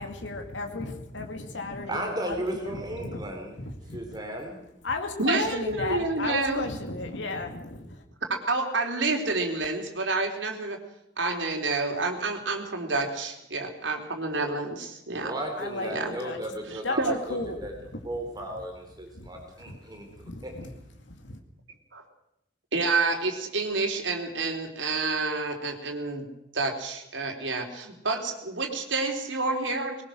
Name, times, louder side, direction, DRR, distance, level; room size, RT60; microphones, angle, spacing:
voice 1, 0.0-3.3 3.6-4.2 4.8-8.0 15.6-16.4 16.7-18.1 19.1-19.8 20.2-20.8 21.1-21.4, left 2 dB, 80° left, 4 dB, 2.4 m, -35 dB
voice 2, 1.9-3.6 3.9-4.6 15.2-17.7 18.0-20.1 20.4-20.5, right 1 dB, 20° right, 2 dB, 3.9 m, -35 dB
voice 3, 5.2-6.6 8.2-10.8 11.2-15.3 15.9-16.1 16.7-17.1 21.9-22.0 22.7-26.3 26.5-30.0, right 3 dB, 80° right, 3 dB, 3.7 m, -29 dB
21.5 x 20.5 x 6.4 m, 0.80 s
head